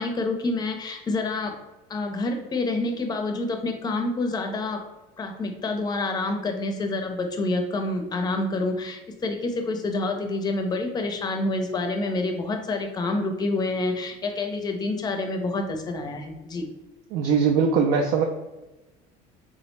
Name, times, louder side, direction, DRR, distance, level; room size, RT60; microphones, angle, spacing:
voice 1, 0.0-1.5 1.9-4.8 5.2-16.7, left 2 dB, 20° left, 5 dB, 0.5 m, -28 dB
voice 2, 17.1-18.2, right 6 dB, 70° right, 2 dB, 0.4 m, -21 dB
3.5 x 2.0 x 3.1 m, 1.1 s
cardioid pair, 125°, 18 cm